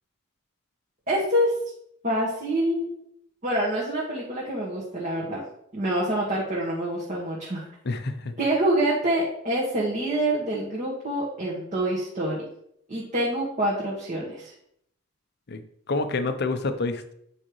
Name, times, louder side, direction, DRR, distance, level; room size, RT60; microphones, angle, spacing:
voice 1, 1.1-1.5 2.0-2.9 3.4-5.4 5.7-7.7 8.4-12.4 12.9-14.5, right 1 dB, 35° right, -5 dB, 1.5 m, -26 dB
voice 2, 7.8-8.4 15.5-15.6 15.9-17.1, left 3 dB, 50° left, 9 dB, 0.6 m, -28 dB
8.7 x 5.0 x 3.1 m, 0.72 s
head